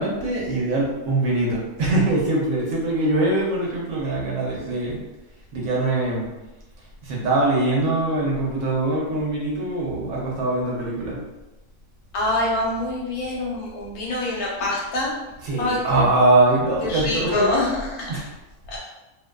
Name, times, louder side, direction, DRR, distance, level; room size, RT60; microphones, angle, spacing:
voice 1, 0.0-5.0 5.5-6.3 7.0-11.2 15.4-17.5 18.1-18.3, right 2 dB, 70° right, -3 dB, 0.9 m, -22 dB
voice 2, 12.1-15.1 15.6-16.1 16.8-18.1 18.7-18.8, left 2 dB, 75° left, -4 dB, 1.2 m, -25 dB
2.6 x 2.2 x 2.2 m, 1.0 s
omnidirectional pair, 1.6 m